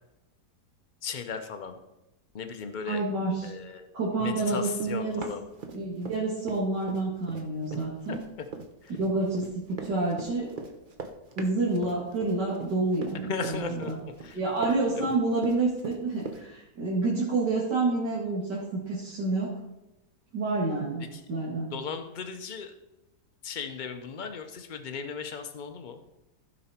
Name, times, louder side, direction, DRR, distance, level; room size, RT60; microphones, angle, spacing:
voice 1, 1.0-1.8 2.3-3.0 3.4-3.9 4.2-5.4 8.1-8.2 8.8-8.9 13.3-13.9 14.2-14.4 14.9-15.2 21.1-21.2 21.7-22.7 23.4-26.0, left 5 dB, 80° left, 7 dB, 0.4 m, -36 dB
voice 2, 2.9-3.5 3.9-5.2 5.7-8.2 9.0-10.5 11.4-14.0 14.3-19.5 20.3-21.0 21.3-21.7, right 3 dB, 80° right, -7 dB, 2.6 m, -28 dB
Run, 4.8-6.2 6.5-16.4, right 4 dB, 40° right, 0.8 m, -40 dB
15.5 x 5.3 x 4.3 m, 0.96 s
omnidirectional pair, 1.8 m